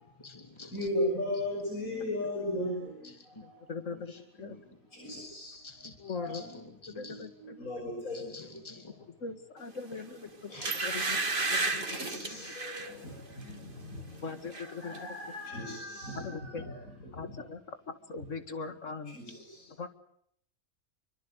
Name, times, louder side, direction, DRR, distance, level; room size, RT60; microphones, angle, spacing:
voice 1, 0.0-0.9 3.0-3.3 4.1-4.6 5.6-6.0 6.3-7.2 8.1-8.9, left 3 dB, 20° left, 5 dB, 3.3 m, -49 dB
voice 2, 0.7-3.7 4.9-5.6 6.1-6.4 6.9-8.5 10.5-10.7 11.8-14.2 14.5-16.7 17.1-17.2 19.1-19.6, left 1 dB, 85° left, 1 dB, 6.9 m, -37 dB
voice 3, 3.4-4.6 6.0-6.4 6.9-7.7 9.2-11.2 11.5-11.9 14.2-15.2 16.2-16.7 17.1-19.2 19.7-19.9, left 4 dB, 65° left, 9 dB, 2.3 m, -41 dB
sound 1, 9.9-10.1 10.6-12.9 13.4-13.6 13.9-14.7 14.9-15.0, right 3 dB, 40° right, 2.2 m, -32 dB
28.0 x 24.5 x 8.2 m, 0.70 s
omnidirectional pair, 1.4 m